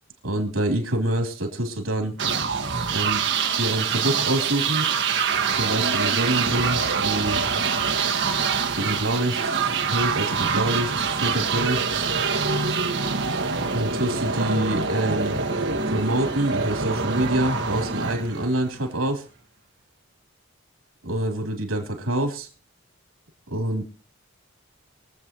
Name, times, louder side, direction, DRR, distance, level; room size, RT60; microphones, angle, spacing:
voice 1, 0.2-2.1 2.9-3.2 3.6-4.9 5.5-7.4 8.7-12.0 13.7-15.4 15.9-19.2 21.0-22.5 23.5-23.9, right 1 dB, 80° right, 4 dB, 3.5 m, -26 dB
sound 1, 2.2-18.9, right 5 dB, 60° right, 1.8 m, -25 dB
23.5 x 7.9 x 3.1 m, 0.38 s
head